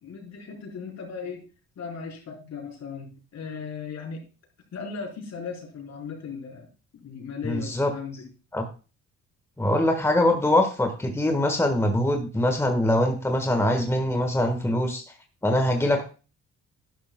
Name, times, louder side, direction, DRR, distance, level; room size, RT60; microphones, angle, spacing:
voice 1, 0.0-1.4 1.8-4.2 4.7-6.7 6.9-8.3, left 5 dB, 60° left, 1 dB, 4.2 m, -37 dB
voice 2, 7.4-7.9 8.5-8.6 9.6-15.0 15.4-16.0, left 1 dB, 10° left, 4 dB, 1.4 m, -23 dB
11.0 x 11.0 x 2.2 m, 0.33 s
cardioid pair, 90°, 30 cm